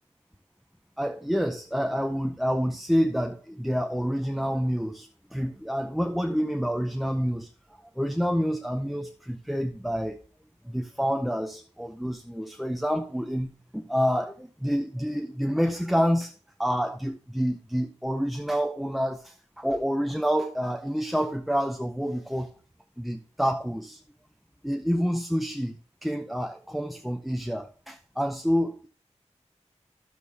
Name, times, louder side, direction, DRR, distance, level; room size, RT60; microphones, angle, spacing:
voice 1, 1.0-7.5 8.0-10.2 10.6-16.3 16.6-22.5 23.0-24.0 24.6-28.9, equal, ahead, 0.6 m, -28 dB
12.5 x 7.0 x 3.3 m
wide cardioid pair, 105°, 12 cm